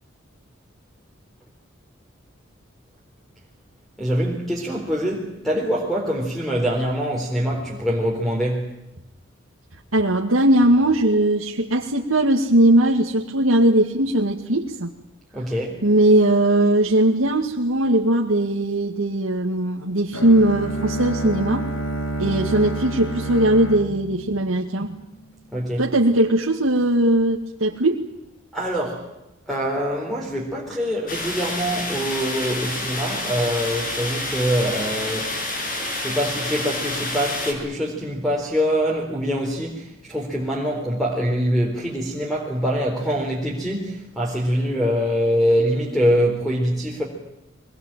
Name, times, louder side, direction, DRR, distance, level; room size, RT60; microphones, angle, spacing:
voice 1, 4.0-8.7 15.3-15.8 25.5-25.8 28.5-29.1 29.5-35.3 35.9-47.0, equal, ahead, 4.1 m, -24 dB
voice 2, 9.9-14.9 15.8-21.6 22.2-24.9 25.8-28.0, right 1 dB, 90° right, 2.2 m, -19 dB
Bowed string instrument, 20.1-25.1, right 1 dB, 85° left, 2.4 m, -29 dB
sound 1, 31.1-37.5, left 2 dB, 45° left, 6.4 m, -28 dB
24.5 x 21.0 x 9.1 m
head